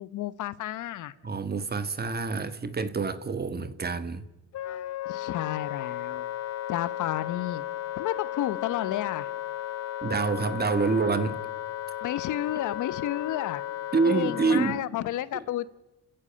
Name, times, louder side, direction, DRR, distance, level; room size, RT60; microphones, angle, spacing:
voice 1, 0.0-1.1 5.1-6.3 6.7-7.6 8.0-9.3 12.0-13.6 14.0-15.7, left 13 dB, 80° left, 16 dB, 1.1 m, -31 dB
voice 2, 1.2-4.2 10.0-11.4 13.9-14.8, right 4 dB, 30° right, 12 dB, 1.6 m, -27 dB
Wind instrument woodwind instrument, 4.5-14.8, left 13 dB, 60° left, 0.7 m, -35 dB
29.5 x 14.5 x 8.8 m, 1.0 s
cardioid pair, 90°, 30 cm